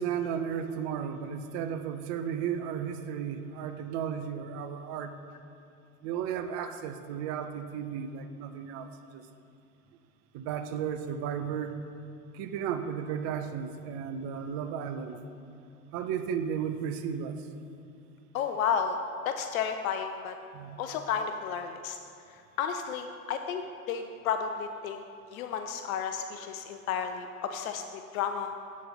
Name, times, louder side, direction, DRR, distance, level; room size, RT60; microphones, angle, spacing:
voice 1, 0.0-5.1 6.0-8.9 9.1-9.2 10.3-11.8 12.3-15.2 15.9-17.3 20.5-20.8, right 8 dB, 40° right, 8 dB, 0.5 m, -34 dB
voice 2, 18.3-19.0 19.2-20.3 20.8-22.0 22.3-25.0 25.3-28.5, left 7 dB, 65° left, 6 dB, 0.6 m, -32 dB
8.2 x 4.1 x 5.8 m, 2.6 s
hypercardioid pair, 85°, 45 cm